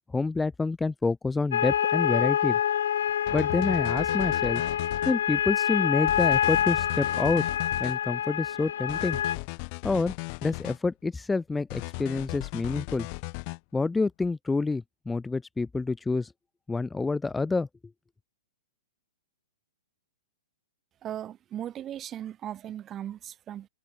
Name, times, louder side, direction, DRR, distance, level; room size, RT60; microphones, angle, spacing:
voice 1, 0.1-2.6 3.3-4.6 5.0-7.5 7.8-9.2 9.8-10.1 10.4-13.1 13.7-16.3 16.7-17.7, left 3 dB, 10° left, 2.7 m, -28 dB
sound 1, 1.5-9.4, left 9 dB, 65° left, 0.8 m, -26 dB
sound 2, 3.3-5.2 6.1-8.0 8.9-10.8 11.7-13.6, left 36 dB, 40° left, 1.3 m, -36 dB
voice 2, 21.0-23.7, right 11 dB, 25° right, 4.5 m, -37 dB
open air
hypercardioid pair, 115°, 0 cm